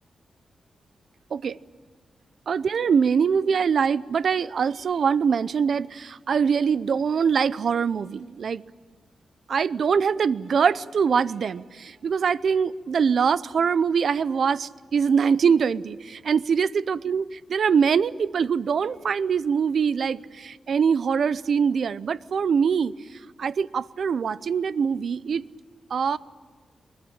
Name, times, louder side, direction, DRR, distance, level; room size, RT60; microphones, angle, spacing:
voice 1, 2.5-8.6 9.5-22.9 23.4-25.5 25.9-26.2, right 6 dB, 70° right, 17 dB, 0.6 m, -23 dB
24.0 x 21.0 x 8.9 m, 1.5 s
cardioid pair, 90°, 0 cm